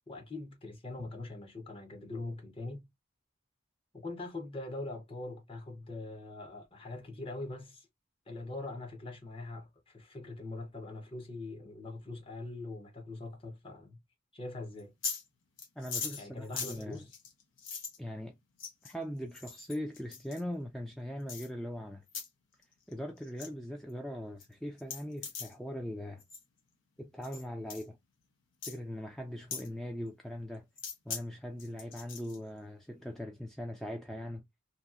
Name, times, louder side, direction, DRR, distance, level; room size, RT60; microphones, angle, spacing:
voice 1, 0.1-2.9 3.9-7.9 8.3-14.0 14.3-14.9 16.1-17.1, left 2 dB, 30° left, 0.8 m, -42 dB
sound 1, 14.8-15.2 15.6-18.0 18.6-18.9 19.3-20.4 21.3-21.5 22.1-22.3 22.6-22.9 23.2-23.5 23.9-24.0 24.4-24.5 24.8-25.5 26.2-26.4 27.2-27.4 27.7-27.8 28.6-28.8 29.5-29.7 30.8-31.2 31.6-32.4, left 5 dB, 90° left, 1.0 m, -40 dB
voice 2, 15.8-17.0 18.0-18.4 18.8-22.0 22.9-26.2 27.0-28.0 28.7-30.7 31.1-34.4, equal, ahead, 0.3 m, -40 dB
2.9 x 2.7 x 2.4 m
head